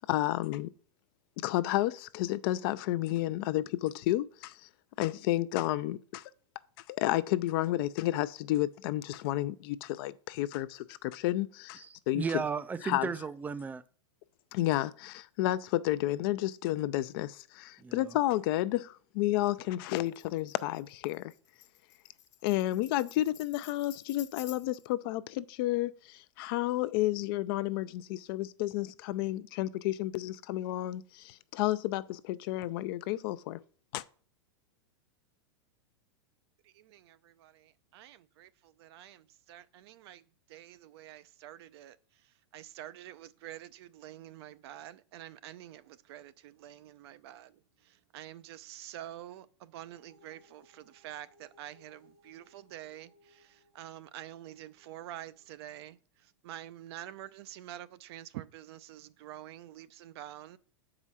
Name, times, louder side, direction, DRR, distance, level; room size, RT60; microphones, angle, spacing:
voice 1, 0.1-0.7 1.4-4.6 5.0-6.2 6.9-12.4 12.8-13.1 14.5-21.3 22.4-33.6 33.9-34.0, left 15 dB, 50° left, 0.5 m, -31 dB
voice 2, 11.8-13.8 17.8-18.2, right 5 dB, 10° right, 0.3 m, -35 dB
Tambourine, 19.9-24.9, left 11 dB, 85° left, 0.8 m, -52 dB
voice 3, 36.6-60.6, right 12 dB, 60° right, 0.6 m, -48 dB
sound 1, 49.9-55.5, equal, 80° right, 2.5 m, -65 dB
7.1 x 4.9 x 5.6 m
hypercardioid pair, 135°, 15 cm